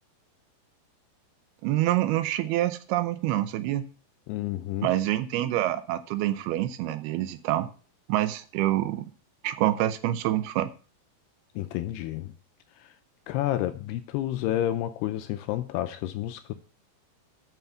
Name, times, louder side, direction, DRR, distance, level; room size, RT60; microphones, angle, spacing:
voice 1, 1.6-3.8 4.8-7.7 8.1-9.1 9.4-10.7, right 14 dB, 80° right, 2.4 m, -26 dB
voice 2, 4.3-4.9 11.6-12.3 13.3-16.5, left 13 dB, 80° left, 2.5 m, -30 dB
7.4 x 5.7 x 6.9 m
omnidirectional pair, 4.9 m